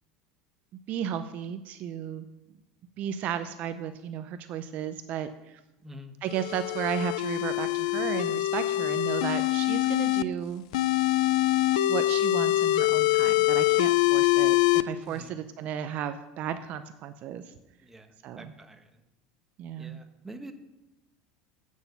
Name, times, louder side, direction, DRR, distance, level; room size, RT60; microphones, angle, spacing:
voice 1, 0.9-2.3 3.0-5.6 6.2-10.7 11.9-14.6 14.8-17.5 18.2-18.5 19.6-20.0, right 9 dB, 50° right, 10 dB, 0.6 m, -34 dB
voice 2, 5.8-6.1 15.0-15.4 17.8-19.0 19.8-20.5, right 1 dB, 10° right, 6 dB, 1.0 m, -47 dB
sound 1, 6.3-10.2 10.7-14.8, left 16 dB, 85° left, 0.4 m, -24 dB
8.9 x 6.3 x 6.9 m, 0.97 s
supercardioid pair, 120°, 4 cm